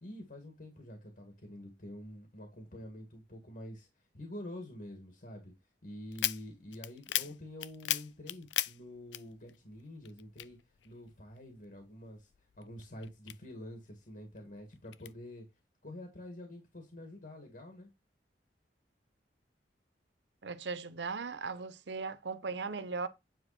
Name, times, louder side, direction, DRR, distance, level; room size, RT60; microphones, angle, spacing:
voice 1, 0.0-3.9 4.1-5.5 5.8-10.6 10.8-12.2 12.6-15.4 15.8-17.9, left 1 dB, 55° left, 2.3 m, -47 dB
sound 1, 6.1-9.8 10.0-11.4 11.8-13.9 14.4-15.1, left 15 dB, 90° left, 0.4 m, -37 dB
voice 2, 20.4-23.1, right 4 dB, 75° right, 0.8 m, -38 dB
9.4 x 4.5 x 4.4 m
head